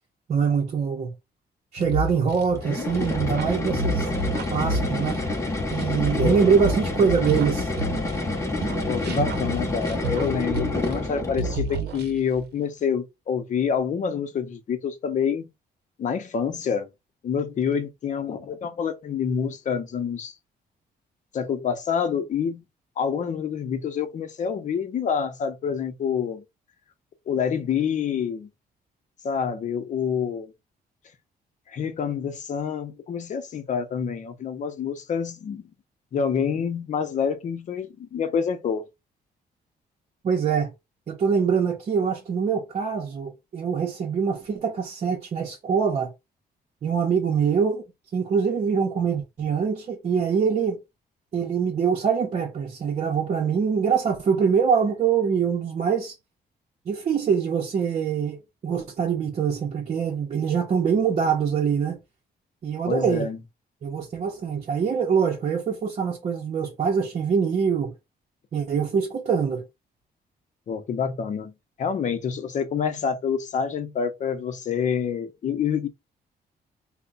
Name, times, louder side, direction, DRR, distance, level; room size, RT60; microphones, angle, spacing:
voice 1, 0.3-1.1 1.7-4.1 4.5-5.2 5.7-7.7 40.2-40.7 41.1-46.1 46.8-47.8 48.1-50.8 51.3-56.1 56.9-62.0 62.6-63.3 63.8-67.9 68.5-69.6, right 6 dB, 45° right, 0.7 m, -24 dB
sound 1, 1.8-8.3 8.6-11.1 11.4-12.4, right 2 dB, 80° right, 0.7 m, -31 dB
sound 2, 2.5-11.7, left 2 dB, 15° left, 0.8 m, -28 dB
voice 2, 6.2-6.5 8.9-15.5 16.0-16.9 17.2-20.3 21.3-22.6 23.0-26.4 27.3-28.5 29.2-30.5 31.7-35.6 36.1-38.8 62.9-63.4 70.7-71.5 71.8-75.9, left 7 dB, 50° left, 0.7 m, -27 dB
3.4 x 2.1 x 3.8 m
cardioid pair, 145°, 17 cm